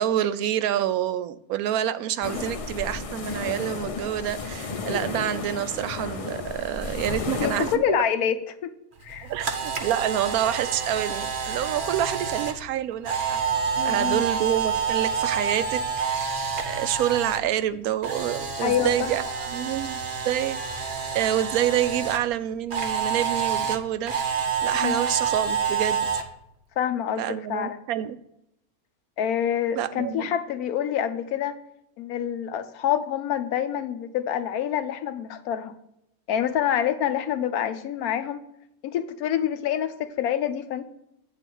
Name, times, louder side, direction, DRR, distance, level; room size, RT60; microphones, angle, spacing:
voice 1, 0.0-7.7 9.2-16.1 16.7-19.2 19.5-24.3 24.6-26.1 27.2-28.2 29.8-30.3, right 11 dB, 80° right, 13 dB, 1.0 m, -27 dB
sound 1, 2.2-7.8, left 4 dB, 60° left, 0.3 m, -33 dB
voice 2, 7.4-8.7 9.0-9.3 13.7-14.2 18.6-19.4 24.8-25.0 26.8-27.8 29.2-31.6 32.0-35.7 36.3-38.4 38.8-40.8, left 9 dB, 85° left, 10 dB, 1.2 m, -27 dB
Camera, 9.0-17.4 17.7-22.2 22.7-26.2, right 6 dB, 40° right, 0.9 m, -28 dB
9.1 x 3.8 x 6.2 m, 0.79 s
omnidirectional pair, 1.5 m